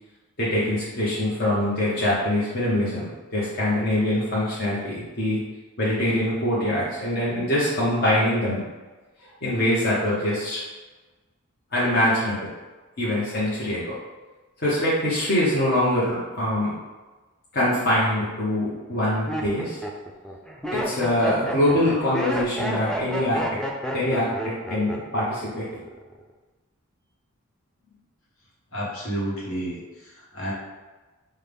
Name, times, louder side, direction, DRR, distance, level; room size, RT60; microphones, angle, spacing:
voice 1, 0.4-3.1 3.3-5.4 5.8-8.6 9.4-10.6 11.7-12.5 13.0-13.9 14.6-16.7 17.5-19.8 20.7-23.4 23.9-25.7, left 1 dB, 45° left, -8 dB, 0.9 m, -24 dB
Laughter, 18.9-25.5 25.8-26.3, equal, 5° left, 0.3 m, -30 dB
voice 2, 28.7-30.5, right 1 dB, 70° left, -5 dB, 1.2 m, -31 dB
5.5 x 2.2 x 3.4 m, 1.2 s
head